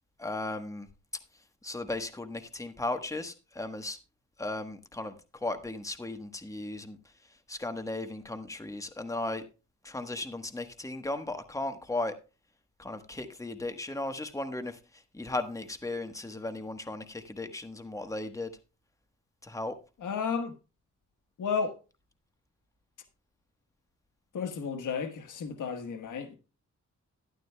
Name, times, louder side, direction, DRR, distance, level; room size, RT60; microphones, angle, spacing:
voice 1, 0.2-0.9 1.6-4.0 4.4-7.0 7.5-9.4 9.8-12.2 12.8-18.5 19.4-19.8, left 2 dB, 10° left, 1.2 m, -36 dB
voice 2, 20.0-20.5 21.4-21.8 24.3-26.4, left 6 dB, 85° left, 1.3 m, -32 dB
13.0 x 11.5 x 2.3 m
cardioid pair, 90°, 30 cm